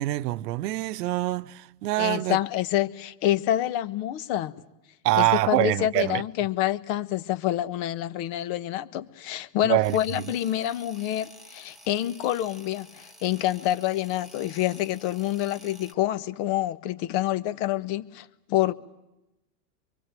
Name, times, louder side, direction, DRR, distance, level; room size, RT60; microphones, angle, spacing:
voice 1, 0.0-2.4 5.0-6.2 9.7-9.9, right 16 dB, 75° right, 0.9 m, -25 dB
voice 2, 2.0-4.6 5.2-18.7, left 13 dB, 55° left, 1.5 m, -27 dB
sound 1, 9.8-15.9, equal, ahead, 2.2 m, -50 dB
25.0 x 24.0 x 9.1 m
hypercardioid pair, 115°, 47 cm